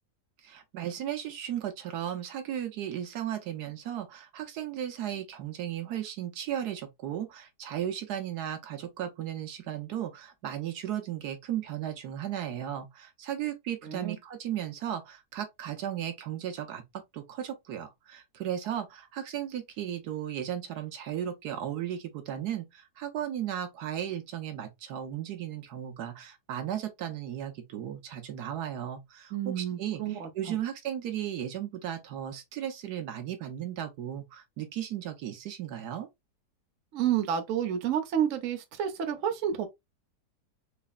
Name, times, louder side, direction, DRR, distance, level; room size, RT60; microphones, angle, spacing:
voice 1, 0.4-16.8 17.1-36.1, right 10 dB, 75° right, 1.2 m, -35 dB
voice 2, 13.8-14.2 29.3-30.6 36.9-39.7, right 9 dB, 60° right, 1.0 m, -30 dB
4.0 x 3.3 x 2.3 m
omnidirectional pair, 1.8 m